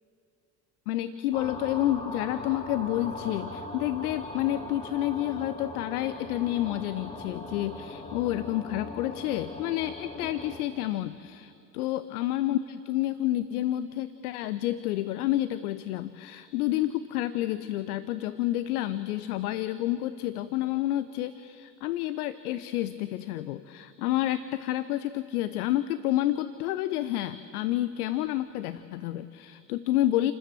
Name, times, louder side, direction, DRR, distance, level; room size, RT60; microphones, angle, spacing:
voice 1, 0.9-30.3, left 14 dB, 65° left, 14 dB, 0.8 m, -29 dB
sound 1, 1.3-10.6, left 2 dB, 10° left, 3.2 m, -40 dB
29.0 x 13.5 x 7.8 m, 2.6 s
figure-of-eight pair, 60°, 49 cm